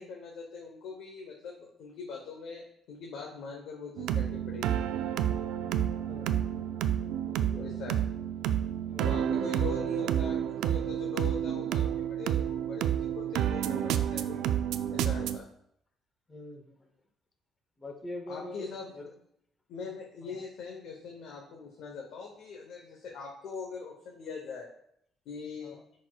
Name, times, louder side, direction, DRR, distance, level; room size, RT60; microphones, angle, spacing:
voice 1, 0.0-4.8 7.6-8.0 9.0-14.5 14.9-15.5 18.3-19.1 19.7-24.7 25.3-25.8, left 5 dB, 70° left, 0 dB, 0.9 m, -42 dB
sound 1, 4.0-15.4, right 10 dB, 85° right, 0.3 m, -30 dB
voice 2, 6.0-6.5 7.2-7.8 8.9-9.5 16.3-16.8 17.8-18.7 18.9-19.1 20.2-20.4 25.6-25.8, left 2 dB, 20° left, 4 dB, 0.8 m, -44 dB
10.5 x 4.2 x 2.3 m, 0.72 s
cardioid pair, 155°, 0 cm